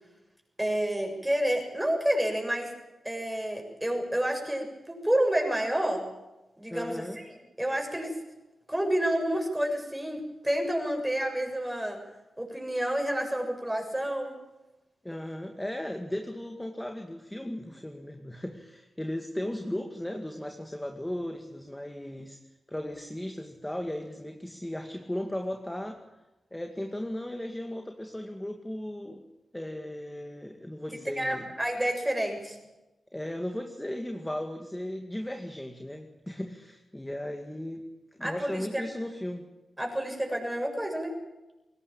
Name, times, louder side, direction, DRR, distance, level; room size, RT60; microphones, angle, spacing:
voice 1, 0.6-2.7 3.0-6.1 6.6-7.2 7.6-8.1 8.7-12.0 12.4-14.4 31.2-32.6 38.2-38.8 39.8-41.1, right 1 dB, 10° right, 3 dB, 7.2 m, -29 dB
voice 2, 6.7-7.2 15.0-22.4 22.7-26.0 26.5-29.2 29.5-31.5 33.1-37.8 38.2-39.5, left 1 dB, 10° left, 4 dB, 2.2 m, -36 dB
21.5 x 18.5 x 8.8 m, 1.0 s
cardioid pair, 85°, 0 cm